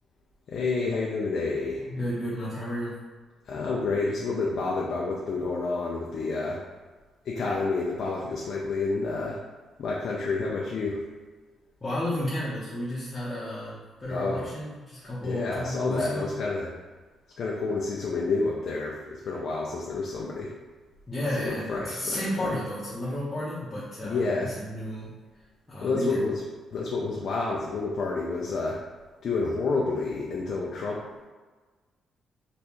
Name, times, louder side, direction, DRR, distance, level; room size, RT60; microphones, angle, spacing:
voice 1, 0.5-1.9 3.5-6.6 7.2-9.4 9.8-11.0 14.1-14.5 15.2-16.7 17.4-20.5 21.4-22.6 24.0-24.6 25.8-26.4 26.7-28.8 29.2-31.0, left 3 dB, 60° left, -3 dB, 0.5 m, -29 dB
voice 2, 1.9-2.9 11.8-16.3 21.1-25.1 25.7-26.2, equal, 25° left, -10 dB, 1.0 m, -32 dB
3.3 x 3.0 x 3.0 m, 1.4 s
cardioid pair, 70°, 0 cm